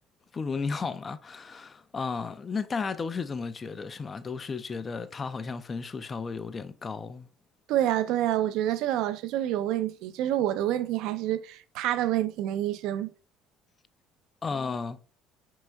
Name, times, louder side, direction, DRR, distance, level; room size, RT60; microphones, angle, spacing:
voice 1, 0.3-7.3 14.4-15.0, left 5 dB, 30° left, 0.3 m, -34 dB
voice 2, 7.7-13.1, right 12 dB, 75° right, 0.4 m, -27 dB
5.1 x 4.5 x 2.2 m
cardioid pair, 105°, 0 cm